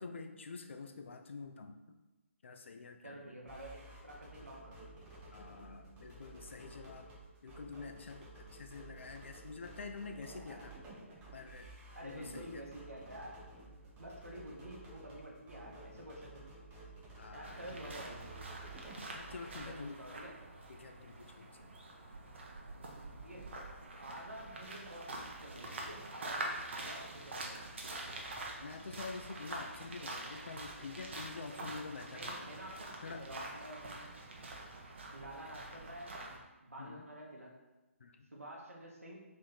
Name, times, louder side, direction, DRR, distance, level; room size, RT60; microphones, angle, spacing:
voice 1, 0.0-2.0 2.4-3.3 5.3-7.1 7.4-10.7 11.3-11.7 12.0-12.6 17.2-17.8 18.9-20.0 20.7-21.8 26.8-26.9 28.3-32.5 33.0-33.3 36.8-37.1 38.0-38.3, left 4 dB, 60° left, 6 dB, 0.4 m, -47 dB
voice 2, 3.0-4.8 10.1-10.6 11.9-13.4 14.0-16.5 17.3-18.3 19.5-20.4 22.7-23.5 24.0-25.1 25.4-27.7 31.2-31.3 32.1-34.1 35.1-36.1 36.6-37.5 38.3-39.2, right 1 dB, 85° right, -2 dB, 1.0 m, -49 dB
sound 1, 3.5-19.6, right 2 dB, 15° right, 0.6 m, -53 dB
sound 2, 17.4-36.4, right 2 dB, 55° right, 0.7 m, -46 dB
3.2 x 3.1 x 3.9 m, 1.0 s
figure-of-eight pair, 140°, 8 cm